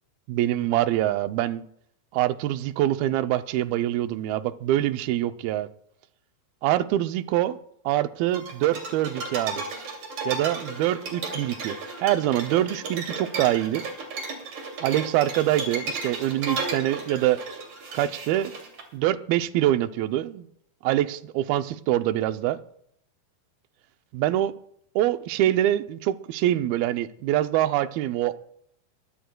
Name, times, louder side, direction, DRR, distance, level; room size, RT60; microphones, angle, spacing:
voice 1, 0.3-1.7 2.1-5.7 6.6-7.6 7.9-9.6 10.3-13.9 14.8-17.4 17.9-18.5 18.9-20.5 20.8-22.6 24.1-24.6 25.0-28.4, right 13 dB, 80° right, 2.4 m, -25 dB
sound 1, 8.3-18.8, right 3 dB, 55° right, 3.8 m, -34 dB
23.0 x 14.5 x 2.2 m
omnidirectional pair, 4.3 m